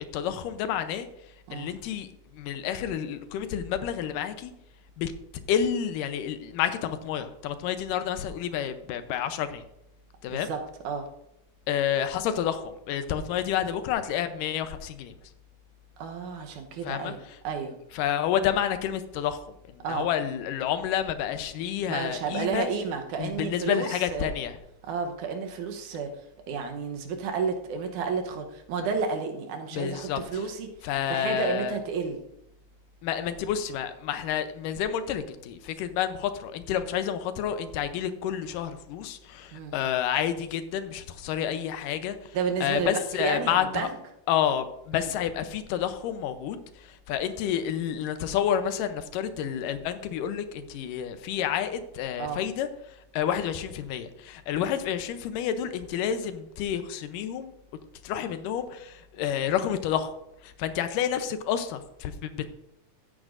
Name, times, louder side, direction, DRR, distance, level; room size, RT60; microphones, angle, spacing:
voice 1, 0.1-1.1 1.5-2.1 2.3-4.5 5.0-5.1 5.5-9.6 10.2-10.5 11.7-15.1 16.8-17.1 17.9-19.4 19.7-22.7 23.2-24.6 29.7-30.2 30.8-31.8 33.0-43.9 44.3-52.7 53.1-57.5 58.0-60.1 60.4-62.5, left 9 dB, 90° left, 10 dB, 2.4 m, -29 dB
voice 2, 10.3-11.1 16.0-17.2 17.4-17.8 19.8-20.1 21.9-24.3 24.8-26.1 26.5-32.2 39.5-39.8 42.3-44.0 44.9-45.1 52.2-52.4, right 5 dB, 75° right, 4 dB, 2.4 m, -31 dB
14.5 x 9.7 x 2.6 m, 0.82 s
omnidirectional pair, 3.7 m